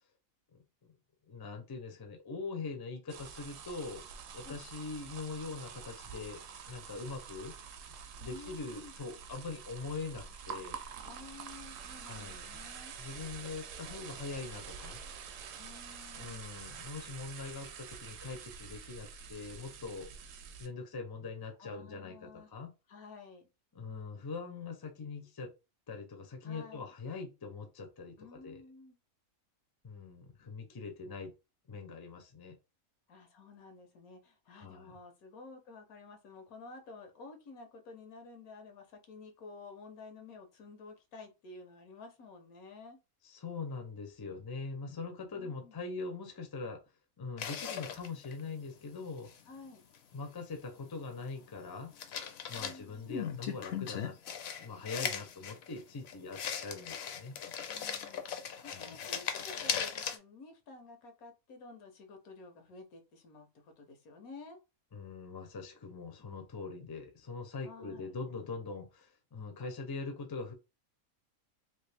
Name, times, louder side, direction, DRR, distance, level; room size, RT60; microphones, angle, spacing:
voice 1, 0.5-0.9 1.3-4.0 4.3-6.4 6.7-7.6 8.2-10.8 12.0-12.6 13.0-15.0 16.2-20.1 20.6-22.7 23.7-25.5 25.9-28.6 29.8-31.3 31.7-32.6 34.5-34.9 43.2-46.8 47.2-49.3 50.1-51.9 52.5-54.2 54.6-57.4 58.6-59.0 64.9-70.5, left 4 dB, 40° left, 0.3 m, -42 dB
sound 1, 3.1-20.7, right 6 dB, 70° right, 0.9 m, -47 dB
voice 2, 8.2-8.9 11.0-12.9 15.6-16.5 21.6-22.5 22.9-23.5 26.4-26.9 28.2-29.0 33.1-43.0 45.3-45.8 49.5-49.9 52.5-53.3 57.6-58.2 58.6-64.6 67.6-68.1, left 3 dB, 90° left, 1.3 m, -52 dB
sound 2, 47.4-48.4 49.3-49.4 51.4-52.8 53.1-60.2, left 7 dB, 65° left, 0.7 m, -38 dB
3.1 x 2.6 x 3.3 m
omnidirectional pair, 1.5 m